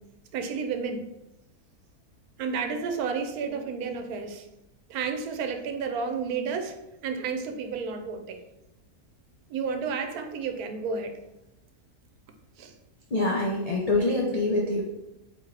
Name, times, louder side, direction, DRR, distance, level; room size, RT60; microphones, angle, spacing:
voice 1, 0.3-1.0 2.4-4.5 4.9-8.4 9.5-11.2 12.6-12.7, right 5 dB, 85° right, 6 dB, 1.1 m, -31 dB
voice 2, 13.1-14.8, left 2 dB, 65° left, -2 dB, 0.3 m, -25 dB
4.0 x 3.5 x 3.3 m, 0.94 s
omnidirectional pair, 1.5 m